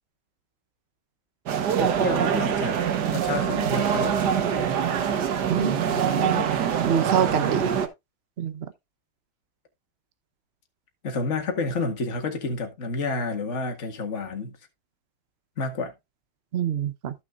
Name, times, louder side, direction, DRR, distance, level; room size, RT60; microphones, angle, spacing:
sound 1, 1.5-7.9, right 8 dB, 55° right, 1.5 m, -24 dB
voice 1, 1.8-2.8 3.1-4.2 5.9-6.5 11.0-14.6 15.6-15.9, left 3 dB, 35° left, 1.9 m, -29 dB
voice 2, 6.8-7.6 8.4-8.7 16.5-17.1, right 8 dB, 75° right, 0.5 m, -25 dB
14.5 x 6.2 x 2.4 m
omnidirectional pair, 2.3 m